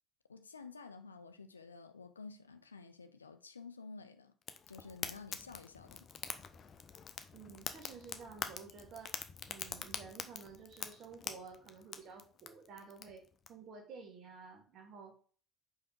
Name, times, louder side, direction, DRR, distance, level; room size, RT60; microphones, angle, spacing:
voice 1, 0.3-4.3 4.7-6.1, left 4 dB, 85° left, 0.4 m, -51 dB
Fire, 4.4-13.5, left 7 dB, 40° left, 0.7 m, -45 dB
voice 2, 7.3-9.1 9.5-15.1, right 5 dB, 50° right, 2.0 m, -52 dB
5.4 x 4.7 x 4.5 m
figure-of-eight pair, 55°, 0 cm